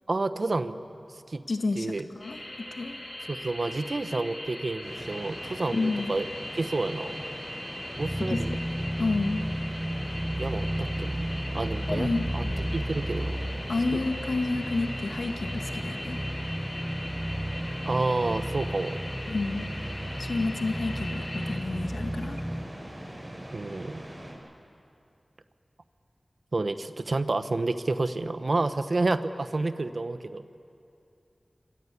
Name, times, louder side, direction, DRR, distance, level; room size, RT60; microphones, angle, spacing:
voice 1, 0.1-0.8 1.3-1.4 1.8-2.0 3.3-6.2 6.5-7.2 8.0-8.5 10.4-11.3 11.5-12.1 12.3-13.4 13.9-14.0 17.9-19.0 23.5-24.0 26.5-30.5, right 2 dB, 65° right, 11 dB, 1.1 m, -29 dB
voice 2, 1.5-3.0 5.7-6.2 8.2-8.6 9.0-9.5 11.9-12.6 13.7-16.2 19.3-19.7 20.2-22.5, left 3 dB, 85° left, 5 dB, 1.8 m, -30 dB
sound 1, 2.2-21.6, left 1 dB, 50° left, 5.1 m, -40 dB
sound 2, 4.8-24.3, right 1 dB, 30° right, 7.4 m, -42 dB
sound 3, 8.0-22.7, equal, 10° right, 0.9 m, -33 dB
27.5 x 24.5 x 8.4 m, 2.6 s
wide cardioid pair, 50°, 0 cm